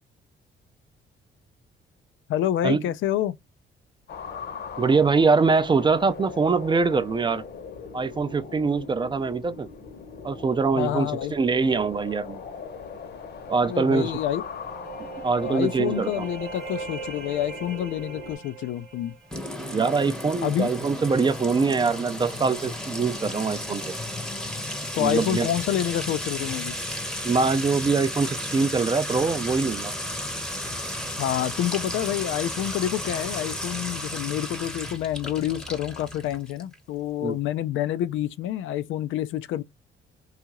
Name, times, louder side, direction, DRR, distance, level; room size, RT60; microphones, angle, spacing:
voice 1, 2.3-3.4 10.8-11.3 13.6-14.5 15.4-19.1 20.4-20.7 25.0-26.7 31.2-39.6, left 11 dB, 80° left, 0.4 m, -28 dB
sound 1, 4.1-18.4, left 5 dB, 55° left, 0.9 m, -40 dB
voice 2, 4.8-7.4 7.9-9.7 10.2-12.4 13.5-14.1 15.0-16.3 19.7-23.9 25.0-25.5 27.2-29.9 37.2-37.4, right 4 dB, 25° right, 0.4 m, -23 dB
sound 2, 14.2-19.9, right 6 dB, 90° right, 0.8 m, -40 dB
Sink (filling or washing) / Trickle dribble / Fill (with liquid), 19.3-36.8, left 1 dB, 5° left, 0.7 m, -33 dB
2.7 x 2.4 x 2.9 m
cardioid pair, 90°, 20 cm